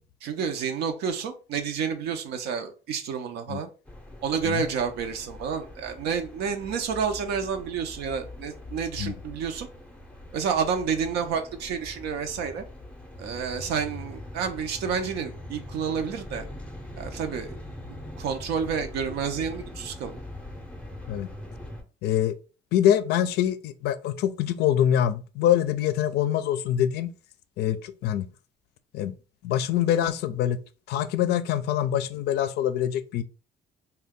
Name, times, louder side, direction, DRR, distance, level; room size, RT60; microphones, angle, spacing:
voice 1, 0.2-3.7 4.2-9.7 10.3-12.6 13.2-16.5 17.0-17.6 18.2-20.2, right 6 dB, 80° right, 0.5 m, -29 dB
sound 1, 3.9-21.8, left 1 dB, 5° left, 0.5 m, -42 dB
voice 2, 22.0-22.3 22.7-27.1 27.6-28.3 28.9-29.2 29.4-30.6 30.9-33.2, left 10 dB, 75° left, 0.4 m, -24 dB
2.7 x 2.2 x 3.5 m
cardioid pair, 110°, 17 cm